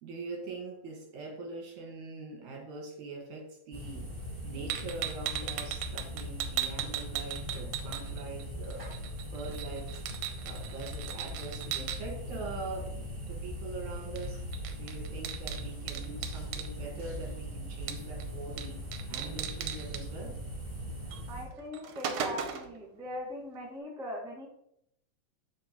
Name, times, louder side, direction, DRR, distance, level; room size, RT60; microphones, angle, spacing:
voice 1, 0.0-4.1 4.4-8.9 9.3-10.0 10.4-14.4 14.8-18.8 19.1-20.4, right 3 dB, 75° right, 1 dB, 3.0 m, -43 dB
sound 1, 3.7-21.4, equal, 20° right, 1.8 m, -40 dB
sound 2, 4.7-8.4 8.7-12.0 14.2-14.3 14.5-16.7 17.9-18.2 18.6-18.7 18.9-20.0 21.1-21.2 21.6-22.8, right 10 dB, 90° right, 2.3 m, -37 dB
voice 2, 21.3-24.5, equal, ahead, -3 dB, 0.9 m, -40 dB
11.5 x 4.3 x 3.0 m, 0.73 s
omnidirectional pair, 3.4 m